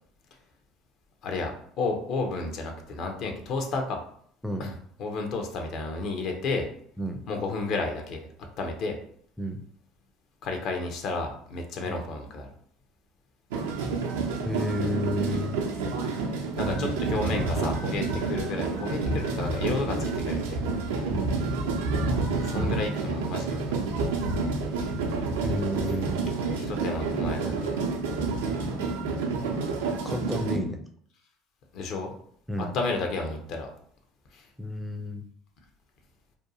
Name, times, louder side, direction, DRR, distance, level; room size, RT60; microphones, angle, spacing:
voice 1, 1.2-4.0 4.6-4.7 5.0-6.7 7.3-8.2 8.6-9.0 10.4-12.5 16.6-20.6 22.4-23.8 26.6-27.8 31.7-32.1 32.6-33.7 34.3-34.4, left 3 dB, 60° left, 3 dB, 0.6 m, -32 dB
sound 1, 13.5-30.6, right 3 dB, 80° right, 0.4 m, -29 dB
voice 2, 14.4-15.6 16.6-16.8 21.1-21.4 25.4-26.4 30.0-30.8 32.5-32.8 34.6-35.3, left 1 dB, ahead, 4 dB, 0.4 m, -31 dB
2.6 x 2.3 x 2.6 m, 0.62 s
hypercardioid pair, 75°, 0 cm